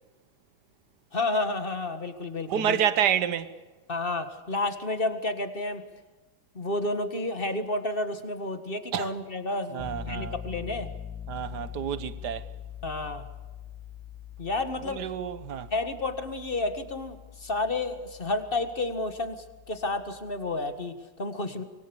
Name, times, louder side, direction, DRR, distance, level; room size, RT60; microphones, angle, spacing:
voice 1, 1.1-2.8 3.9-5.8 6.6-10.9 12.8-13.3 14.4-15.0 15.7-21.6, left 2 dB, 30° left, 1.8 m, -31 dB
voice 2, 2.5-3.5 8.9-9.1 9.7-10.3 11.3-12.5 14.8-15.7, right 9 dB, 65° right, 1.7 m, -28 dB
Piano, 9.8-20.6, left 8 dB, 5° left, 3.6 m, -43 dB
25.5 x 23.0 x 7.1 m
omnidirectional pair, 1.9 m